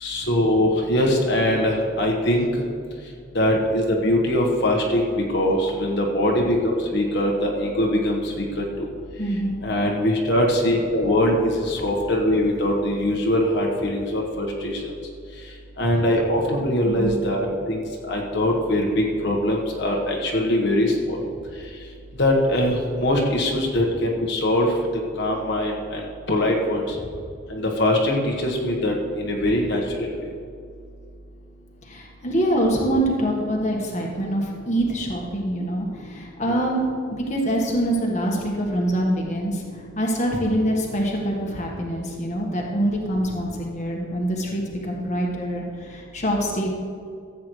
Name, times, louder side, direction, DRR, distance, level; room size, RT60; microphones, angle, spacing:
voice 1, 0.0-2.5 3.3-8.9 9.6-14.8 15.8-21.2 22.2-24.7 25.2-26.8 27.5-30.1 36.5-36.6, left 1 dB, 55° left, -1 dB, 1.4 m, -22 dB
voice 2, 9.2-9.6 16.8-17.2 31.8-36.8 37.1-46.7, right 1 dB, 35° left, -1 dB, 1.4 m, -25 dB
15.0 x 8.4 x 3.2 m, 2.3 s
head